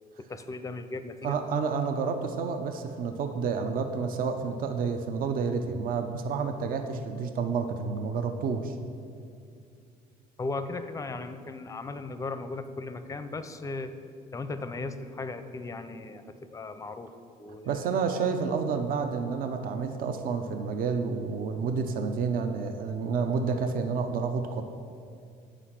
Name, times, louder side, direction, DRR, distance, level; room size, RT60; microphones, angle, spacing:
voice 1, 0.2-1.4 10.4-13.9 14.3-18.0, left 3 dB, 20° left, 10 dB, 0.5 m, -37 dB
voice 2, 1.2-8.7 17.6-24.6, right 5 dB, 55° right, 7 dB, 0.6 m, -29 dB
8.2 x 5.0 x 5.8 m, 2.3 s
cardioid pair, 110°, 17 cm